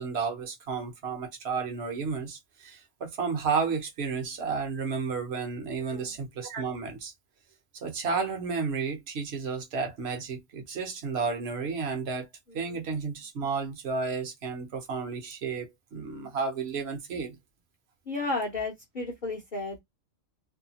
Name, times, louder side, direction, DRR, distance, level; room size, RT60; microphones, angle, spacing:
voice 1, 0.0-7.1 7.7-12.3 12.5-17.4, right 5 dB, 60° right, 1.0 m, -32 dB
voice 2, 18.1-19.8, left 3 dB, 45° left, 0.7 m, -33 dB
2.7 x 2.2 x 2.8 m
omnidirectional pair, 1.3 m